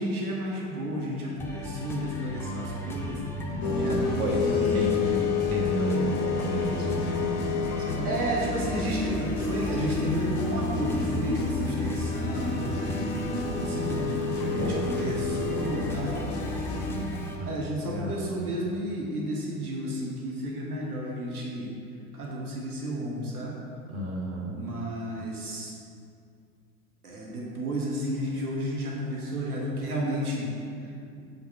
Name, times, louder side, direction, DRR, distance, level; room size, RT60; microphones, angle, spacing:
voice 1, 0.0-3.2 3.8-4.8 8.0-16.3 17.4-21.7 22.1-23.6 24.5-25.7 27.0-30.5 31.1-31.3, right 1 dB, 80° right, -3 dB, 1.4 m, -32 dB
sound 1, 1.4-17.4, left 1 dB, 5° left, 0.6 m, -36 dB
voice 2, 3.5-8.1 13.5-14.8 15.5-15.8 16.6-18.3 23.9-24.6, right 1 dB, 30° right, -2 dB, 1.4 m, -32 dB
sound 2, 3.6-16.9, left 5 dB, 35° left, 0.9 m, -30 dB
6.6 x 5.6 x 4.1 m, 2.4 s
figure-of-eight pair, 85°, 44 cm